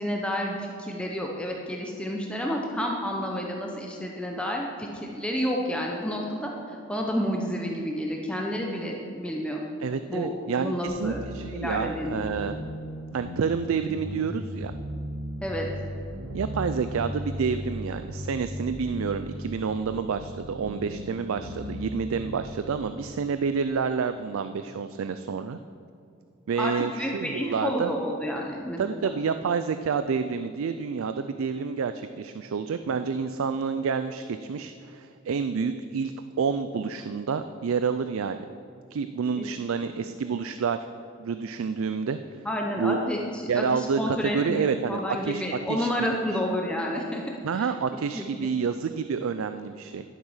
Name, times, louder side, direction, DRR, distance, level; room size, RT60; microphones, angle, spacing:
voice 1, 0.0-9.6 10.1-11.2 11.5-12.2 15.4-15.7 26.6-29.1 39.3-39.5 39.9-40.0 42.4-47.2 47.5-47.7 48.1-48.5, equal, 5° left, -1 dB, 0.7 m, -30 dB
voice 2, 9.8-12.6 13.1-14.7 16.3-25.6 26.5-27.9 28.8-38.5 38.9-40.8 41.2-42.2 42.8-43.1 43.5-46.4 47.4-50.0, right 5 dB, 70° right, 10 dB, 0.4 m, -29 dB
sound 1, 10.9-22.7, equal, 85° right, 2.8 m, -37 dB
11.5 x 7.4 x 5.6 m, 2.6 s
head